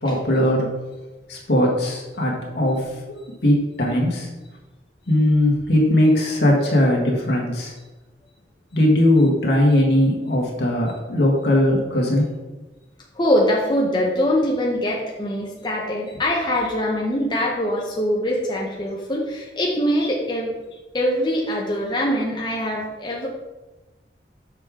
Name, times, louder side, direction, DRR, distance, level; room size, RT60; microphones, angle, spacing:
voice 1, 0.0-0.7 1.3-2.8 3.4-4.3 5.1-7.7 8.7-12.3, left 1 dB, 65° left, -2 dB, 1.6 m, -19 dB
voice 2, 13.1-20.5 20.9-23.3, equal, 25° left, -3 dB, 0.7 m, -23 dB
6.7 x 4.9 x 3.6 m, 1.1 s
head